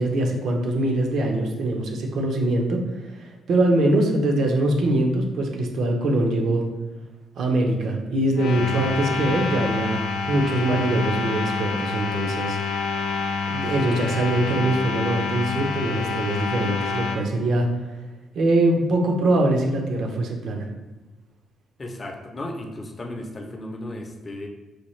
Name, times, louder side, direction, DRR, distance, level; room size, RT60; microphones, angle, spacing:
voice 1, 0.0-6.6 7.4-10.0 10.3-12.6 13.5-17.7 18.3-20.7, right 1 dB, 70° right, 2 dB, 0.6 m, -23 dB
sound 1, 8.3-17.2, left 4 dB, 85° left, 0.4 m, -27 dB
voice 2, 21.8-24.5, left 1 dB, 30° left, 3 dB, 0.5 m, -35 dB
4.3 x 2.3 x 3.1 m, 1.2 s
cardioid pair, 90°, 0 cm